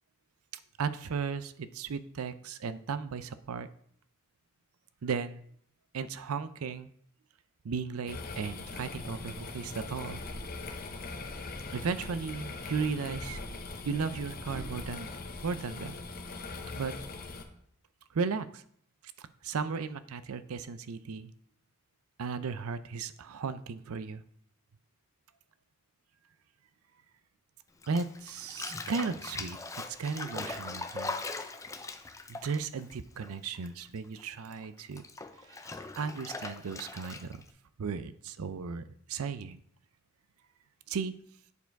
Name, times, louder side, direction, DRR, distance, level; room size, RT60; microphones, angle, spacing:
voice 1, 0.8-3.7 5.0-5.4 5.9-6.9 7.6-10.2 11.7-13.4 13.8-15.1 15.4-15.9 16.7-16.9 18.1-18.6 19.4-21.3 22.2-24.2 27.9-31.2 32.3-35.0 35.6-37.4 37.8-39.6 40.9-41.2, right 5 dB, 85° right, 13 dB, 0.5 m, -35 dB
sound 1, 8.1-17.4, left 3 dB, 45° left, 0.8 m, -41 dB
sound 2, 10.1-12.5 13.1-16.2 16.6-17.2, right 1 dB, 65° right, 2.3 m, -48 dB
Bathtub (filling or washing), 27.8-33.7 33.9-37.5, left 3 dB, 15° left, 0.4 m, -40 dB
8.2 x 4.5 x 4.6 m, 0.64 s
head